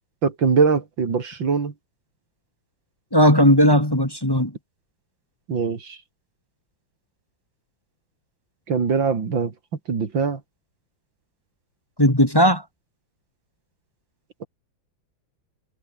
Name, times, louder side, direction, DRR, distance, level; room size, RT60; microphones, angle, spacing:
voice 1, 0.2-1.7 5.5-6.0 8.7-9.5 9.9-10.4 14.4-14.5, right 5 dB, 70° right, 3.3 m, -22 dB
voice 2, 3.1-4.5 12.0-12.6, equal, 10° left, 2.9 m, -16 dB
omnidirectional pair, 2.2 m